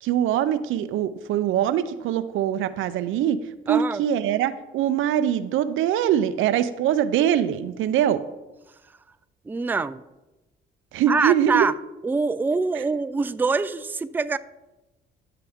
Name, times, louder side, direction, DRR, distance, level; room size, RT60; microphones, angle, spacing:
voice 1, 0.0-3.4 3.7-8.2 10.9-11.7 12.7-12.8, right 10 dB, 85° right, 13 dB, 0.5 m, -23 dB
voice 2, 3.7-4.0 9.5-10.0 11.1-11.7 12.0-14.4, right 4 dB, 10° right, 13 dB, 0.3 m, -24 dB
12.5 x 5.8 x 3.6 m, 1.0 s
cardioid pair, 90°, 20 cm